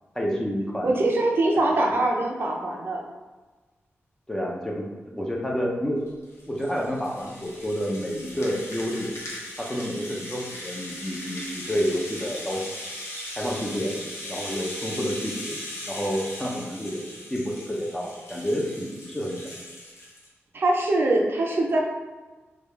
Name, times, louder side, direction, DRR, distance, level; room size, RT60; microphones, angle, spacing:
voice 1, 0.1-0.9 1.7-1.8 4.3-6.1 6.5-9.1 9.6-12.8 13.4-13.9 14.3-15.6 15.9-17.0 17.3-19.5, equal, 10° left, -2 dB, 0.5 m, -29 dB
voice 2, 0.8-3.0 20.5-21.8, right 2 dB, 55° right, 0 dB, 0.5 m, -23 dB
Rattle (instrument), 6.1-20.3, left 1 dB, 90° left, 0.8 m, -39 dB
3.3 x 2.3 x 3.2 m, 1.3 s
wide cardioid pair, 145°, 5 cm